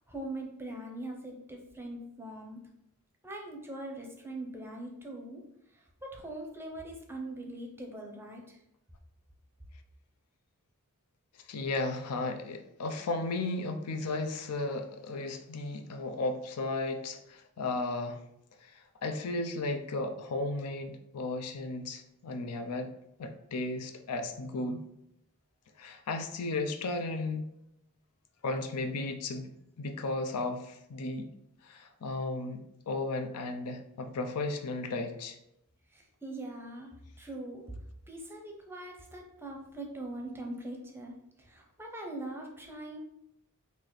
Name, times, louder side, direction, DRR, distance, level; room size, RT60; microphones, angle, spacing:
voice 1, 0.1-2.6 3.2-5.4 5.7-8.6 35.9-37.7 38.1-43.0, right 1 dB, 10° right, 1 dB, 0.6 m, -42 dB
voice 2, 11.5-18.2 18.6-18.7 19.0-22.9 23.2-24.9 25.8-27.5 28.4-29.5 29.8-31.3 31.6-35.4, left 2 dB, 80° left, 6 dB, 0.5 m, -34 dB
4.0 x 2.7 x 3.1 m, 0.79 s
head